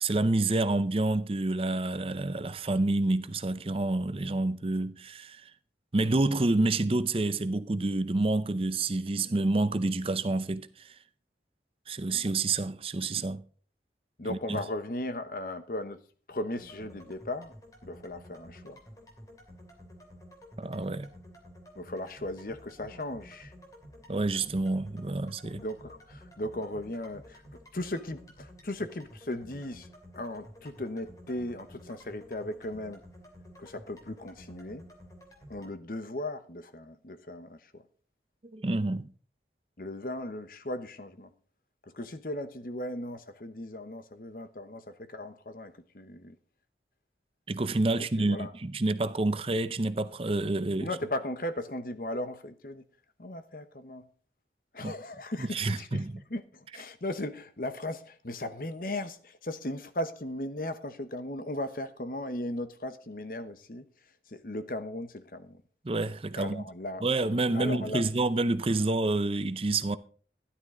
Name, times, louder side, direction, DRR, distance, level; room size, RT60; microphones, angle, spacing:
voice 1, 0.0-5.5 5.9-10.9 11.9-13.4 14.2-14.6 20.6-21.1 24.1-25.6 38.5-39.1 47.5-50.9 54.8-54.9 55.4-56.2 65.8-66.6 67.0-70.0, right 2 dB, 30° right, 0.6 m, -28 dB
voice 2, 14.2-16.0 16.3-17.5 17.8-18.8 21.7-23.5 25.5-27.4 27.7-29.9 30.1-33.0 33.6-34.8 35.5-37.8 39.8-41.3 41.9-46.4 48.2-48.5 50.8-52.8 53.2-54.1 54.7-56.0 56.3-63.9 64.3-65.6 66.4-67.0 67.5-68.0, left 1 dB, 50° left, 1.0 m, -37 dB
sound 1, 16.6-35.7, equal, 20° left, 2.8 m, -52 dB
13.0 x 11.5 x 3.8 m
head